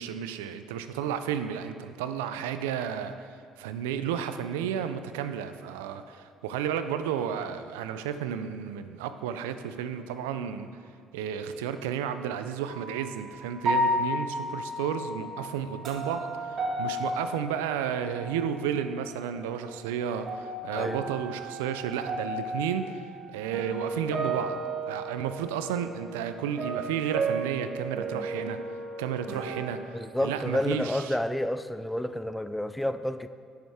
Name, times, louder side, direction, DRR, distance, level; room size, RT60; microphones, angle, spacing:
voice 1, 0.0-10.7 11.1-24.6 24.9-28.6 29.0-29.9 30.2-31.2, right 8 dB, 90° right, 10 dB, 0.4 m, -32 dB
sound 1, 12.6-13.0 13.6-18.5 18.8-19.6 20.0-29.8, right 1 dB, 50° right, 1.6 m, -33 dB
voice 2, 29.9-33.3, left 1 dB, 5° left, 12 dB, 0.4 m, -30 dB
9.8 x 6.4 x 3.5 m, 2.1 s
hypercardioid pair, 65°, 0 cm